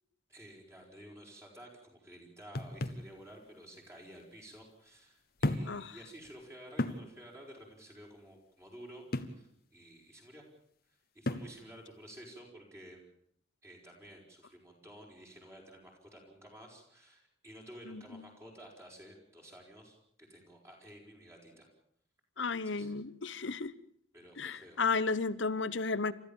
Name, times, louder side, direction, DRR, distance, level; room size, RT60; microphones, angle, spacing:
voice 1, 0.3-10.4 11.1-13.0 13.6-21.7 22.6-23.0 24.1-25.2, right 1 dB, 15° right, 5.3 m, -53 dB
Barre metal sur tissu + meuble, 2.5-3.1 4.2-4.3 5.4-5.8 6.2-6.3 6.8-7.1 9.1-9.4 11.3-11.6, left 1 dB, 50° left, 1.3 m, -34 dB
voice 2, 17.9-18.3 22.4-23.7 24.4-26.1, left 4 dB, 70° left, 0.9 m, -33 dB
29.0 x 14.0 x 7.2 m
head